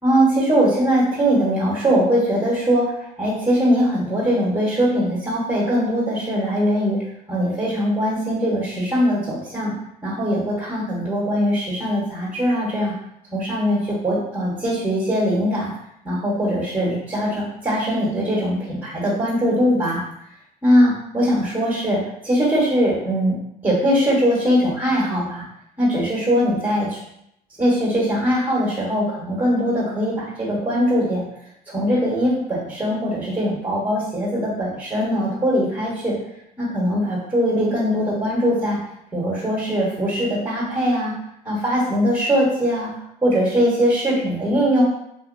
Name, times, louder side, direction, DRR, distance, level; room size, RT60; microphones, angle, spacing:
voice 1, 0.0-7.0 7.3-9.7 10.0-12.9 13.3-15.7 16.0-20.0 20.6-23.4 23.6-25.4 25.8-27.0 27.6-31.3 31.7-36.1 36.6-38.8 39.1-41.1 41.4-42.9 43.2-44.8, equal, 10° right, -7 dB, 1.1 m, -21 dB
2.9 x 2.6 x 2.6 m, 0.78 s
cardioid pair, 110°, 17 cm